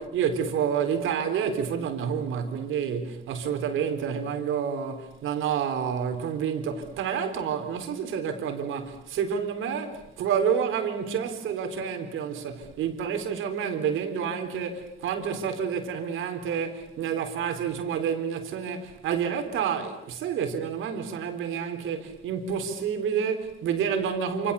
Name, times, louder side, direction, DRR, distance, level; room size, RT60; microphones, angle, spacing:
voice 1, 0.0-24.5, right 7 dB, 85° right, 4.0 m, -29 dB
28.0 x 28.0 x 7.0 m
cardioid pair, 90°, 20 cm